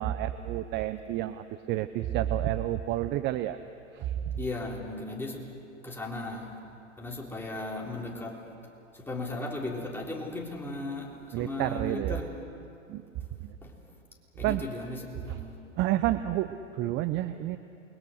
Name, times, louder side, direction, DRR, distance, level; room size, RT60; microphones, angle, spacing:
voice 1, 0.0-3.6 3.9-4.4 11.3-12.2 12.9-13.0 13.4-13.6 14.4-14.6 15.3-15.4 15.8-17.6, right 13 dB, 30° right, 11 dB, 0.6 m, -30 dB
voice 2, 4.4-5.5 5.8-6.6 7.0-8.4 8.9-12.4 13.6-13.8 14.4-15.6, left 2 dB, 5° left, -2 dB, 3.6 m, -36 dB
28.5 x 21.5 x 6.5 m, 2.6 s
figure-of-eight pair, 100°, 39 cm